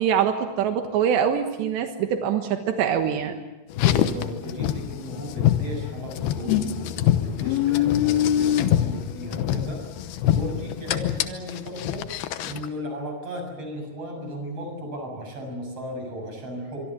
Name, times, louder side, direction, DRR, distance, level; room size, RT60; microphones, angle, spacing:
voice 1, 0.0-3.4, right 8 dB, 85° right, 5 dB, 3.6 m, -24 dB
Car, 3.7-12.7, left 11 dB, 75° left, 2.8 m, -24 dB
voice 2, 3.7-9.9 10.2-12.1 12.4-16.8, equal, 35° right, 3 dB, 8.0 m, -35 dB
25.0 x 24.0 x 7.5 m, 1.1 s
omnidirectional pair, 4.9 m